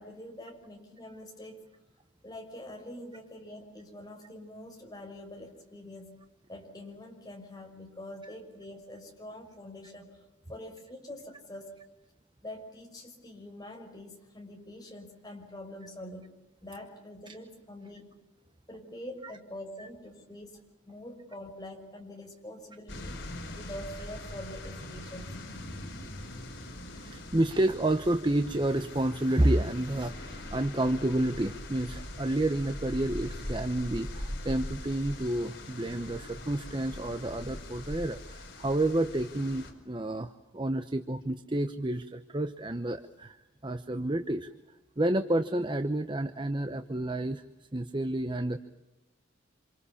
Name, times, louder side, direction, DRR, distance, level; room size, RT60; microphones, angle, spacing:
voice 1, 0.0-1.6 2.2-6.1 6.5-11.8 12.4-16.3 16.6-18.1 18.7-23.2 23.5-25.3, left 1 dB, 20° left, 2 dB, 5.9 m, -45 dB
sound 1, 22.9-39.7, left 1 dB, 65° left, 5.0 m, -41 dB
voice 2, 26.9-43.4 43.6-44.5 45.0-47.4 47.7-48.6, right 1 dB, 25° right, 9 dB, 0.9 m, -30 dB
27.5 x 27.5 x 7.2 m, 0.98 s
head